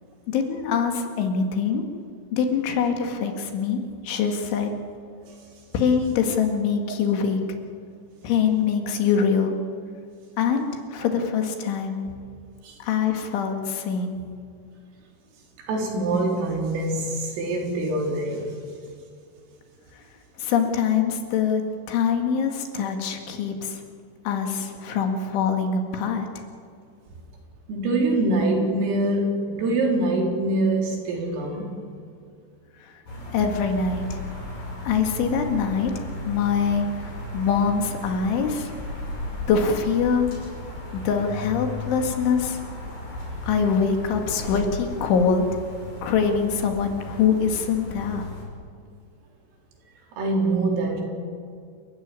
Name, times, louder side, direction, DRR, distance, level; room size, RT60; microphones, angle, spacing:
voice 1, 0.3-1.8 2.3-4.7 5.7-7.4 8.2-9.6 10.4-12.0 12.8-14.2 20.4-21.6 21.9-23.8 24.3-26.4 32.8-32.9 33.3-34.2 34.9-36.9 37.3-38.7 39.5-40.3 40.9-42.6 43.5-45.5 46.0-48.3, left 6 dB, 70° left, 4 dB, 4.3 m, -24 dB
voice 2, 15.7-18.4 27.7-31.7 50.2-51.0, right 2 dB, 90° right, 0 dB, 6.5 m, -24 dB
sound 1, 33.1-48.4, left 2 dB, 45° left, 8.3 m, -35 dB
28.5 x 14.5 x 9.7 m, 2.2 s
omnidirectional pair, 5.7 m